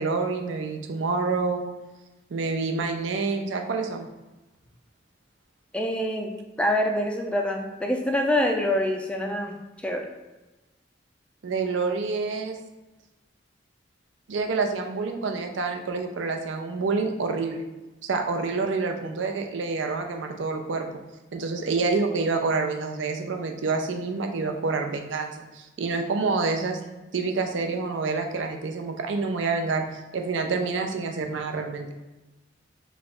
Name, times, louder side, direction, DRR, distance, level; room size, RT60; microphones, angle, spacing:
voice 1, 0.0-1.7 2.3-4.1 11.4-12.6 14.3-17.7 18.0-20.9 21.3-26.8 27.1-29.8 30.1-31.9, right 4 dB, 80° right, 4 dB, 0.5 m, -27 dB
voice 2, 5.7-9.6 9.8-10.1, left 1 dB, 5° left, 2 dB, 0.3 m, -26 dB
3.2 x 2.3 x 4.2 m, 1.1 s
head